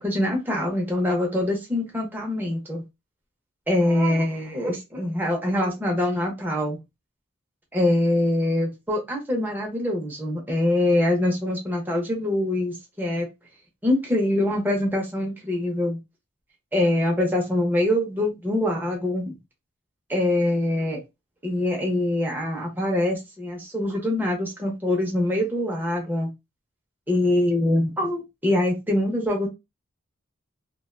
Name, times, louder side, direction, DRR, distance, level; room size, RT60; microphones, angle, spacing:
voice 1, 0.0-2.8 3.7-6.8 7.7-13.3 13.8-16.0 16.7-19.4 20.1-21.0 21.4-26.3 27.1-29.5, left 1 dB, 10° right, 0.6 m, -24 dB
2.4 x 2.2 x 2.4 m
head